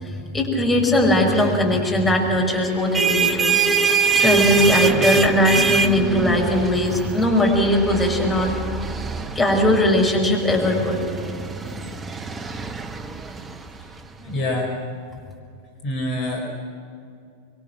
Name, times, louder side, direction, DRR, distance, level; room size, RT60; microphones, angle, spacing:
voice 1, 0.0-3.6 4.1-8.5 9.3-11.0 14.3-14.4, left 1 dB, 15° left, -1 dB, 5.9 m, -19 dB
sound 1, 2.7-14.0, right 5 dB, 20° right, 1.1 m, -24 dB
voice 2, 14.2-14.7 15.8-16.4, left 1 dB, 40° left, 0 dB, 4.8 m, -26 dB
25.5 x 24.0 x 6.1 m, 2.4 s
figure-of-eight pair, 90°, 0 cm